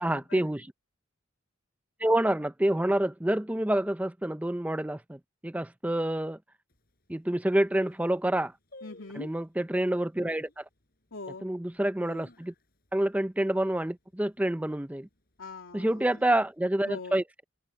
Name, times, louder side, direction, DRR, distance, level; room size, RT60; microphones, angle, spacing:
voice 1, 0.0-0.7 2.0-6.4 7.1-8.5 9.1-10.6 11.4-12.5 12.9-15.1 15.7-17.4, right 1 dB, 5° right, 0.5 m, -28 dB
sound 1, 6.7-6.8 7.4-7.5 7.7-8.1 8.7-9.5 10.2-10.6 11.1-11.2 11.8-12.9 13.2-13.3 13.6-14.0 14.4-14.8 15.4-16.1 16.4-16.5, left 1 dB, 45° left, 6.5 m, -51 dB
voice 2, 8.8-9.3 11.1-11.5 15.4-16.1 16.9-17.2, left 3 dB, 75° left, 2.7 m, -41 dB
open air
head